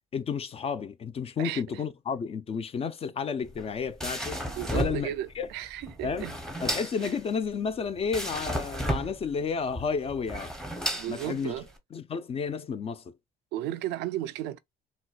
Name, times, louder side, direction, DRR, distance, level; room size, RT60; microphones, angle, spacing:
voice 1, 0.1-4.4 4.7-5.5 6.0-6.3 6.6-10.5 11.1-11.5 11.9-13.1, left 6 dB, 35° left, 0.4 m, -31 dB
voice 2, 1.4-1.8 4.5-6.4 7.0-7.1 10.9-11.7 13.5-14.6, right 13 dB, 90° right, 0.4 m, -34 dB
sound 1, 3.4-11.8, right 1 dB, 5° left, 0.8 m, -34 dB
3.9 x 2.3 x 2.3 m
cardioid pair, 110°, 17 cm